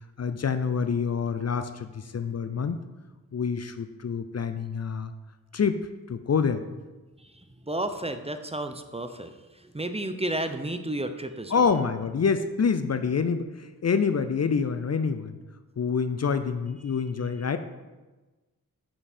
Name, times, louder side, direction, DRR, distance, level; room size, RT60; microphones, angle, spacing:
voice 1, 0.2-2.8 3.3-5.1 5.5-6.6 11.5-15.4 15.8-17.6, left 6 dB, 45° left, 10 dB, 0.5 m, -27 dB
voice 2, 7.2-11.7, right 1 dB, 15° right, 8 dB, 0.6 m, -32 dB
7.1 x 5.4 x 4.3 m, 1.2 s
cardioid pair, 40°, 36 cm